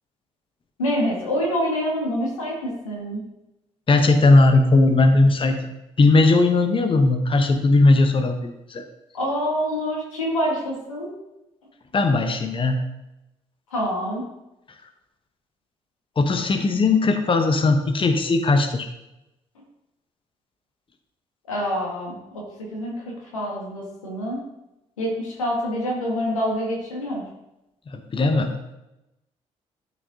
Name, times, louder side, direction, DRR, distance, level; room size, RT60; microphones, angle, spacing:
voice 1, 0.8-3.2 9.1-11.1 13.7-14.3 21.5-22.4 22.7-22.9 23.3-24.4 25.0-27.2, equal, 85° left, -2 dB, 1.6 m, -26 dB
voice 2, 3.9-5.6 6.0-8.8 11.9-12.8 16.2-18.9 27.9-28.5, left 2 dB, 30° left, 6 dB, 1.0 m, -18 dB
11.5 x 4.7 x 2.8 m, 0.92 s
figure-of-eight pair, 45°, 17 cm